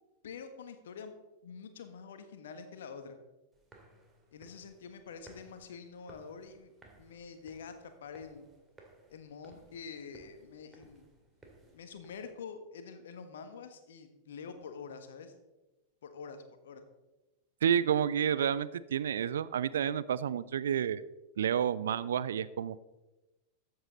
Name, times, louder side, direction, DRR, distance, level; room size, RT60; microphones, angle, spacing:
voice 1, 0.2-1.1 1.4-3.2 4.3-6.7 7.0-8.5 9.1-11.1 11.7-15.3 16.0-16.8, left 5 dB, 60° left, 8 dB, 1.3 m, -46 dB
sound 1, 3.5-12.3, right 2 dB, 15° right, 2.3 m, -60 dB
voice 2, 17.6-21.0 21.4-22.8, right 8 dB, 65° right, 17 dB, 0.4 m, -30 dB
13.5 x 7.9 x 3.9 m, 1.1 s
figure-of-eight pair, 90°, 0 cm